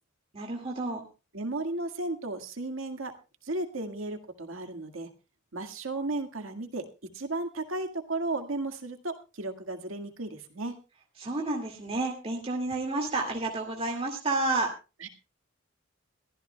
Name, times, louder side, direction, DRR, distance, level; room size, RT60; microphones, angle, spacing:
voice 1, 0.3-1.0 11.2-14.7, right 2 dB, 30° right, 1 dB, 2.2 m, -30 dB
voice 2, 1.3-3.1 3.4-5.1 5.5-6.8 7.1-10.8 15.0-15.1, right 2 dB, 85° right, 6 dB, 1.9 m, -34 dB
23.0 x 14.5 x 2.3 m, 0.31 s
head